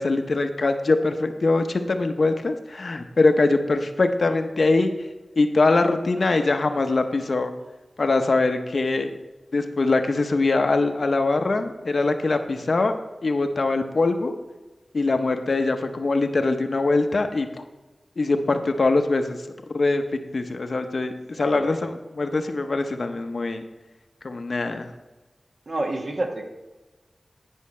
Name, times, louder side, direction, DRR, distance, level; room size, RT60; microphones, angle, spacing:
voice 1, 0.0-4.9 5.4-7.5 8.0-9.1 9.5-12.9 13.2-14.3 14.9-17.5 18.2-19.4 19.7-20.0 20.3-23.6 24.2-24.9, left 3 dB, 65° left, 7 dB, 0.7 m, -22 dB
voice 2, 21.4-21.8 25.7-26.5, right 2 dB, 55° right, 2 dB, 1.3 m, -29 dB
10.5 x 5.5 x 4.3 m, 1.2 s
wide cardioid pair, 70°, 0 cm